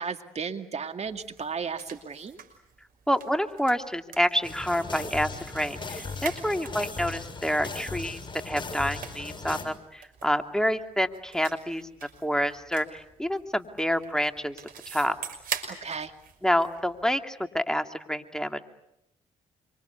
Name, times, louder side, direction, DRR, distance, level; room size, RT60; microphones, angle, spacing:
voice 1, 0.0-2.4 15.7-16.1, right 5 dB, 45° right, 6 dB, 2.3 m, -34 dB
sound 1, 1.0-17.1, right 7 dB, 65° right, 5.8 m, -44 dB
voice 2, 3.1-8.2 8.4-11.8 12.2-14.5 14.9-15.2 16.4-18.6, equal, 5° left, 6 dB, 2.7 m, -28 dB
sound 2, 4.4-9.6, left 4 dB, 30° left, 7.0 m, -38 dB
27.5 x 25.5 x 8.3 m, 0.84 s
hypercardioid pair, 50°, 16 cm